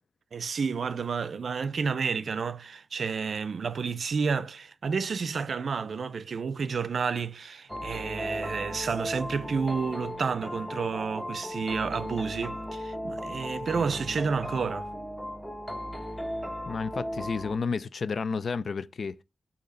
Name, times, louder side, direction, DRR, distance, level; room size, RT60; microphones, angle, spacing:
voice 1, 0.3-14.9, right 5 dB, 75° right, 0.4 m, -30 dB
sound 1, 7.7-17.6, equal, 5° left, 1.0 m, -36 dB
voice 2, 16.6-19.2, left 5 dB, 70° left, 0.4 m, -31 dB
6.7 x 2.8 x 5.1 m
wide cardioid pair, 80°, 0 cm